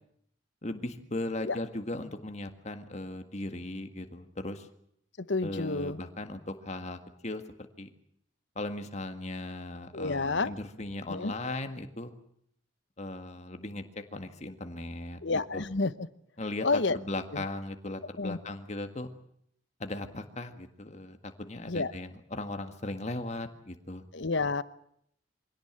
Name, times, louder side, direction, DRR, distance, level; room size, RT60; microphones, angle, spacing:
voice 1, 0.6-4.7 5.4-7.4 7.8-7.9 8.6-12.1 13.0-15.2 15.5-15.6 16.4-19.1 19.8-24.0, left 2 dB, 35° left, 7 dB, 1.8 m, -37 dB
voice 2, 5.2-6.0 9.9-10.5 11.1-11.3 15.2-15.9 16.6-17.0 17.3-17.4 18.2-18.4 21.7-21.9 24.1-24.6, left 3 dB, 65° left, 15 dB, 1.0 m, -29 dB
24.5 x 17.5 x 9.0 m, 0.71 s
head